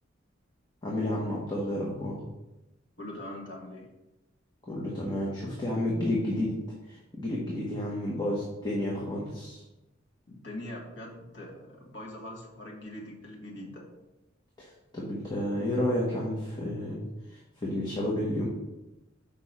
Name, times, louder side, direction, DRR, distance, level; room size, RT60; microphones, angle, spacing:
voice 1, 0.8-2.2 4.7-6.5 6.9-9.6 14.6-18.5, left 1 dB, 20° left, -5 dB, 1.3 m, -31 dB
voice 2, 3.0-3.9 10.3-13.9, left 1 dB, 60° left, -2 dB, 1.9 m, -42 dB
7.0 x 5.3 x 4.3 m, 1.0 s
head